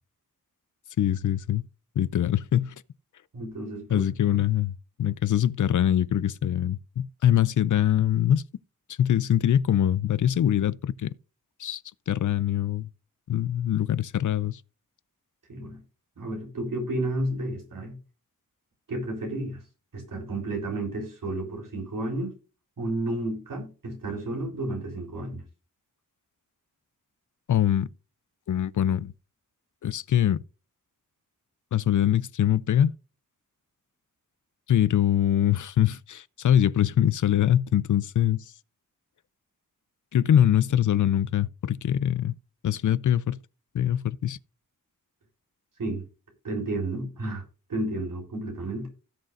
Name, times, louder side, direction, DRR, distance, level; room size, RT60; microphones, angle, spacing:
voice 1, 1.0-1.6 2.0-2.7 3.9-8.5 9.0-11.1 11.6-11.8 12.1-12.9 13.3-14.6 27.5-27.9 28.5-29.1 29.8-30.4 31.7-32.9 34.7-38.4 40.1-42.3 42.6-43.4 43.7-44.4, left 10 dB, 65° left, 0.5 m, -23 dB
voice 2, 3.3-4.0 4.3-4.4 15.5-15.8 16.2-17.9 18.9-19.6 19.9-22.3 22.8-25.4 45.8-46.0 46.4-47.4 47.7-48.9, right 1 dB, 75° right, 3.8 m, -31 dB
17.0 x 6.5 x 2.5 m
wide cardioid pair, 110°, 33 cm